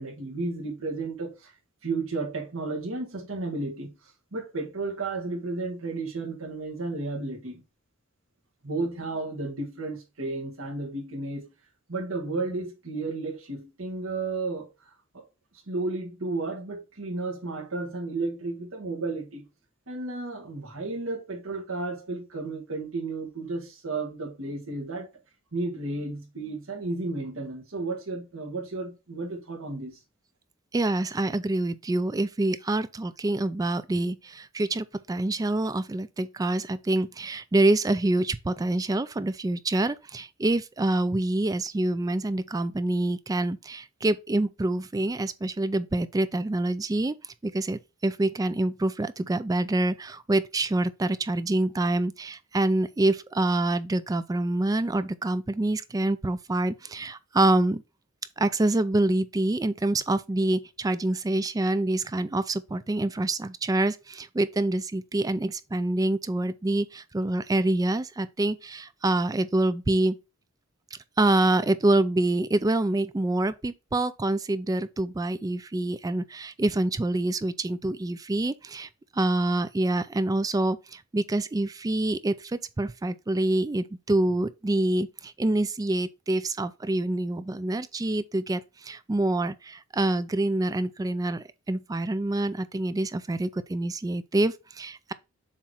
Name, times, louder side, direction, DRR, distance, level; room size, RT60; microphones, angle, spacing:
voice 1, 0.0-1.5 1.8-3.9 4.3-7.6 8.6-11.5 11.9-14.7 15.1-15.2 15.7-19.4 19.9-25.1 25.5-30.0, right 3 dB, 65° right, 1.7 m, -33 dB
voice 2, 30.7-47.2 47.4-57.8 58.4-70.2 71.2-95.1, right 2 dB, 15° right, 0.3 m, -26 dB
7.3 x 3.0 x 4.4 m
head